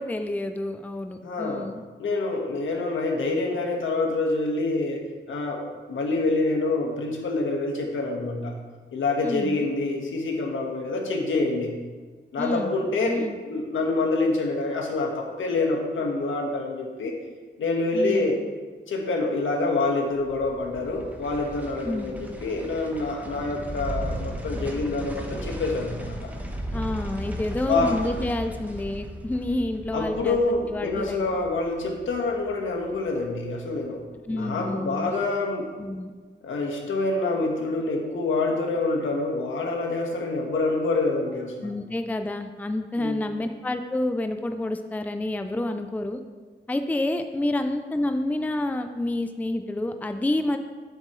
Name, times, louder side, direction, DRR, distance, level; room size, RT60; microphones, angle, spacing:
voice 1, 0.0-1.8 9.2-9.7 12.4-13.4 17.9-18.3 21.8-22.2 26.7-30.4 30.7-31.3 34.3-35.2 35.8-36.1 41.6-46.2 46.7-50.6, left 1 dB, 10° left, 7 dB, 0.5 m, -29 dB
voice 2, 1.2-1.7 2.0-5.0 5.3-8.6 8.9-11.8 12.3-17.1 17.6-18.4 18.9-26.1 27.7-27.9 29.9-34.0 34.3-35.7 36.4-41.7 42.9-43.2, left 3 dB, 85° left, 1 dB, 1.6 m, -26 dB
sound 1, 20.2-33.3 33.6-33.7, equal, 10° right, 1.1 m, -36 dB
12.5 x 7.6 x 3.2 m, 1.4 s
wide cardioid pair, 140°, 20 cm